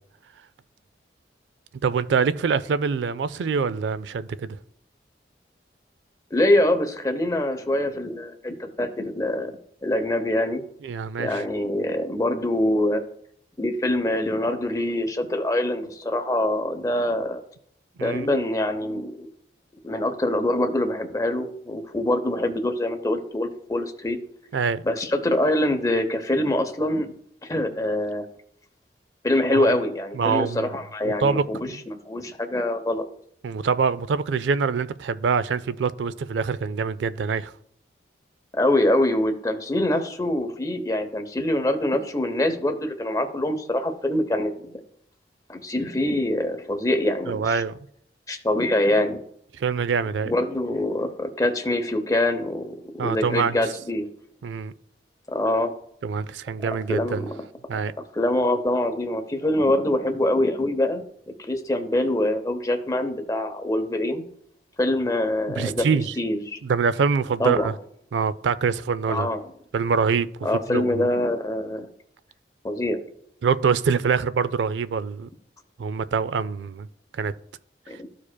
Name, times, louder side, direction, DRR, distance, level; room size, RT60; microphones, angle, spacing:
voice 1, 1.8-4.6 10.8-11.4 18.0-18.3 24.5-24.8 29.5-29.7 30.1-30.7 31.1-31.8 33.4-37.5 47.3-47.8 49.6-50.3 53.0-53.6 54.4-54.7 56.0-57.2 57.7-57.9 65.5-66.1 66.6-67.7 68.1-69.3 69.7-70.3 70.7-71.1 73.4-75.3 75.8-76.9 77.1-77.3, right 5 dB, 90° right, 0.4 m, -25 dB
voice 2, 6.3-9.6 9.8-10.6 11.2-13.0 13.6-17.4 18.0-19.3 19.8-24.2 24.8-27.1 27.4-28.2 29.2-31.6 31.9-33.0 38.5-44.8 45.5-47.6 48.3-49.2 50.2-54.1 55.3-55.7 56.9-57.5 58.1-61.0 61.4-64.2 64.8-65.9 66.2-66.6 67.4-67.7 69.1-69.4 70.4-71.9 72.6-73.0 77.9-78.1, left 1 dB, 20° left, 0.7 m, -24 dB
13.5 x 4.9 x 2.2 m
head